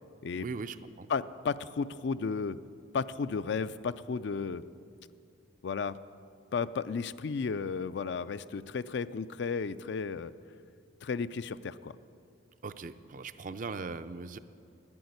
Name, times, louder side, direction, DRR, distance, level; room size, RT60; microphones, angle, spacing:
voice 1, 0.4-1.1 12.6-14.4, right 4 dB, 45° right, 12 dB, 0.4 m, -39 dB
voice 2, 1.1-2.6 2.9-4.6 5.6-6.0 6.5-10.3 11.0-11.9, left 5 dB, 65° left, 14 dB, 0.4 m, -33 dB
10.5 x 9.6 x 9.4 m, 2.4 s
head